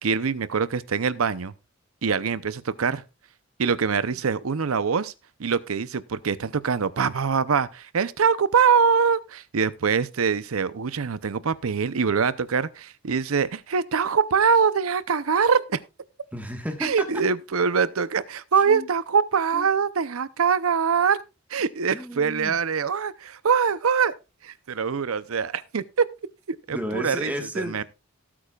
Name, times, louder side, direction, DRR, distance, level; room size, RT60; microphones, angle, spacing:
voice 1, 0.0-1.5 2.0-3.0 3.6-5.1 5.4-15.8 16.8-21.2 21.5-24.1 24.4-26.1 26.5-27.8, right 6 dB, 90° right, 0.7 m, -23 dB
voice 2, 16.3-16.9 18.7-18.8 19.5-19.6 21.9-22.5 26.7-27.8, equal, 5° right, 1.4 m, -32 dB
18.0 x 8.6 x 2.4 m
head